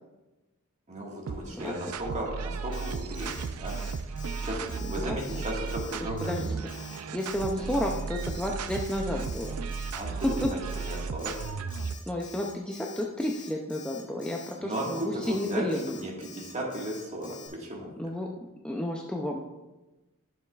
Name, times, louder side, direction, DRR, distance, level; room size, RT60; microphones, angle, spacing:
voice 1, 0.9-3.8 4.4-6.6 9.9-11.3 14.6-17.9, equal, 30° right, -2 dB, 1.7 m, -35 dB
sound 1, 1.3-12.1, right 4 dB, 80° right, 0.4 m, -35 dB
Alarm, 2.7-17.5, left 5 dB, 35° left, 1.8 m, -48 dB
voice 2, 6.0-6.6 7.1-9.5 10.2-10.6 12.1-16.0 18.0-18.3 18.6-19.4, left 1 dB, 5° left, -1 dB, 0.5 m, -31 dB
11.5 x 6.8 x 2.4 m, 1.1 s
head